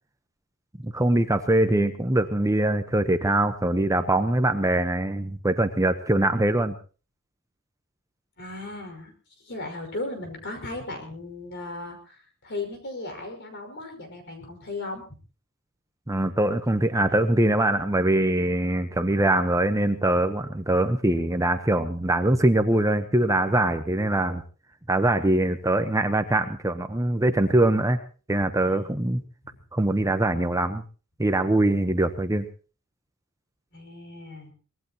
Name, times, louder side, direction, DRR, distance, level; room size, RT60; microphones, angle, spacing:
voice 1, 0.8-6.8 16.1-24.4 24.9-28.0 28.3-29.2 29.7-30.8 31.2-32.5, right 1 dB, 15° right, 8 dB, 1.0 m, -23 dB
voice 2, 8.4-9.1 9.4-15.1 28.6-29.0 33.7-34.5, left 2 dB, 50° left, 5 dB, 5.5 m, -36 dB
24.0 x 19.5 x 3.0 m, 0.37 s
head